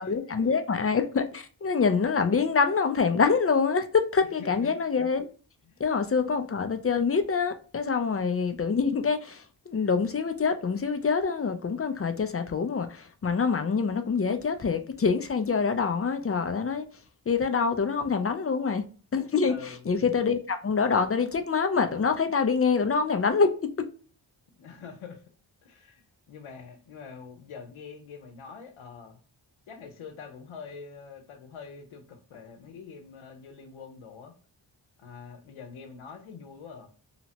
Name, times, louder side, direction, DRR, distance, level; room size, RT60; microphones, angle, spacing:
voice 1, 0.0-5.3 5.8-16.8 17.3-18.8 19.1-23.5, left 5 dB, 30° left, 0.4 m, -25 dB
voice 2, 4.4-4.7 5.6-5.9 19.5-19.8 24.6-25.2 25.6-29.2 29.7-34.3 35.0-36.9, left 5 dB, 80° left, 0.7 m, -45 dB
2.9 x 2.0 x 2.8 m
cardioid pair, 50°, 48 cm